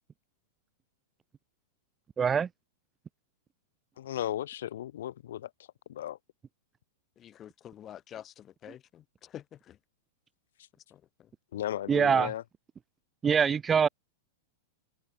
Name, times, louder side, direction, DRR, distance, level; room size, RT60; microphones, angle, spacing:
voice 1, 2.2-2.5 11.9-12.3 13.2-13.9, right 7 dB, 20° right, 0.4 m, -24 dB
voice 2, 4.0-5.5 5.9-6.2 11.5-12.4, left 12 dB, 60° left, 1.0 m, -35 dB
voice 3, 7.2-9.8 10.9-11.3, left 11 dB, 25° left, 1.5 m, -48 dB
figure-of-eight pair, 95°, 0 cm